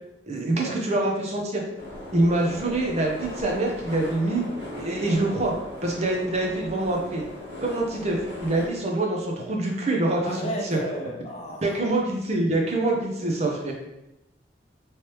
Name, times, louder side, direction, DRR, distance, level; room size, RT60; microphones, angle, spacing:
voice 1, 0.2-1.6 2.1-4.4 4.7-5.5 5.8-7.2 7.6-10.8 11.6-13.7, right 2 dB, 35° right, 0 dB, 0.6 m, -25 dB
sound 1, 1.8-8.7, left 1 dB, 60° right, 1.2 m, -38 dB
voice 2, 10.2-11.8, equal, 35° left, 0 dB, 0.5 m, -33 dB
3.2 x 3.0 x 2.9 m, 0.92 s
head